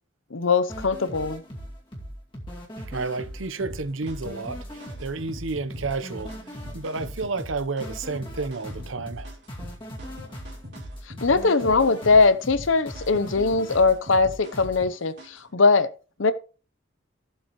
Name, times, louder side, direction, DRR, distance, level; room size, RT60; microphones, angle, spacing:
voice 1, 0.3-1.4 11.2-15.9 16.2-16.3, left 4 dB, 85° left, 0.8 m, -21 dB
sound 1, 0.7-14.8, equal, 25° left, 2.3 m, -39 dB
voice 2, 2.8-6.3 6.7-9.3, right 3 dB, 90° right, 0.9 m, -31 dB
sound 2, 3.7-15.5, equal, 60° right, 2.9 m, -45 dB
14.0 x 7.9 x 3.1 m
head